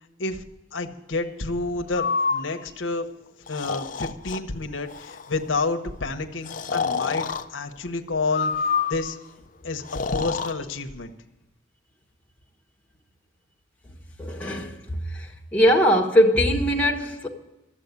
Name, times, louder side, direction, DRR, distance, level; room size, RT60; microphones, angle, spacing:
voice 1, 0.7-3.1 3.5-7.3 7.5-9.2 9.6-9.8 10.1-11.1, left 3 dB, 85° left, 1.0 m, -29 dB
Breathing, 1.9-2.4 3.5-4.4 4.9-5.3 6.5-7.4 8.3-9.2 9.8-10.5, left 5 dB, 45° left, 0.5 m, -27 dB
voice 2, 14.2-15.3 15.5-17.3, equal, 10° left, 1.3 m, -21 dB
13.5 x 7.5 x 9.6 m
head